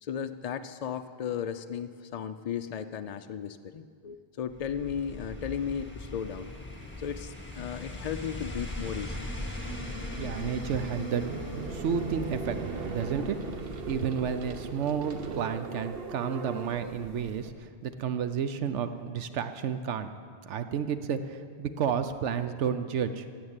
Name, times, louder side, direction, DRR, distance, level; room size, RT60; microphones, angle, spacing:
voice 1, 0.0-6.5 7.0-9.3 12.2-12.3, left 8 dB, 65° left, 9 dB, 0.3 m, -35 dB
sound 1, 4.5-14.9 15.1-15.2, left 1 dB, 10° left, 1.9 m, -40 dB
voice 2, 10.2-11.2 11.7-12.6 12.9-13.4 13.6-20.1 20.4-23.2, right 7 dB, 90° right, 10 dB, 1.0 m, -31 dB
sound 2, 10.3-17.5, right 5 dB, 60° right, 1.0 m, -39 dB
16.0 x 8.0 x 8.8 m, 2.1 s
omnidirectional pair, 1.2 m